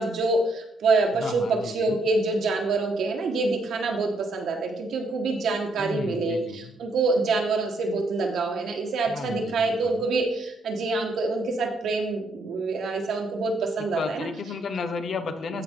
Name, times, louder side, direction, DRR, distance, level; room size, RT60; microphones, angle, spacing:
voice 1, 0.0-14.3, right 3 dB, 75° right, 2 dB, 1.7 m, -26 dB
voice 2, 1.2-2.0 5.8-6.8 9.1-10.0 13.8-15.6, left 4 dB, 65° left, 7 dB, 1.1 m, -34 dB
14.5 x 5.0 x 3.9 m, 0.76 s
cardioid pair, 100°, 0 cm